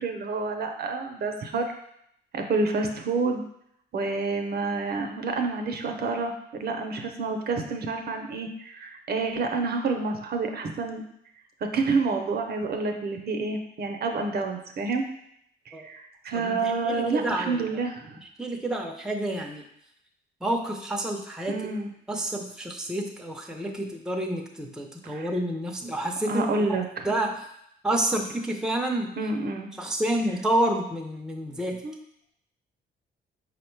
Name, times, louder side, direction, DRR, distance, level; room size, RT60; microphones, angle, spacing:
voice 1, 0.0-1.7 2.3-3.4 3.9-11.0 11.7-15.0 15.7-18.2 21.5-21.9 25.0-25.3 26.2-27.1 29.2-29.7 31.8-31.9, right 3 dB, 55° right, 4 dB, 0.6 m, -28 dB
voice 2, 16.4-17.6 18.4-19.6 20.4-21.6 22.1-26.8 27.0-27.4 27.8-29.1 29.8-31.8, right 1 dB, 5° right, 2 dB, 0.5 m, -29 dB
4.9 x 2.1 x 4.5 m, 0.74 s
cardioid pair, 90°, 20 cm